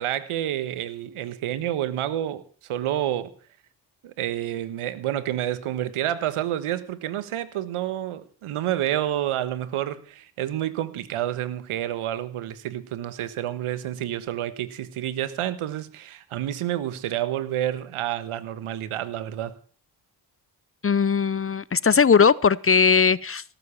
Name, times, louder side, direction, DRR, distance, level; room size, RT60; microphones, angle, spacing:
voice 1, 0.0-2.4 2.7-3.3 4.0-19.5, right 12 dB, 85° right, 1.5 m, -29 dB
voice 2, 20.8-23.4, left 6 dB, 30° left, 0.6 m, -19 dB
18.0 x 7.6 x 7.2 m
supercardioid pair, 50°, 49 cm